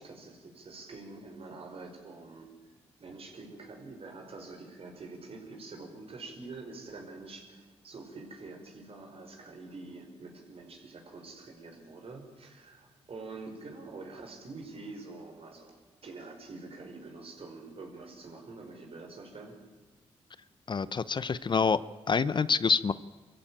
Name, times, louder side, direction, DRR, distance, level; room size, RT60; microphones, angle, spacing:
voice 1, 0.0-2.5 3.0-19.6, right 3 dB, 60° right, 3 dB, 5.2 m, -46 dB
voice 2, 20.7-21.8 22.1-22.9, left 5 dB, 45° left, 17 dB, 0.7 m, -26 dB
23.0 x 15.0 x 8.9 m, 1.3 s
supercardioid pair, 60°, 11 cm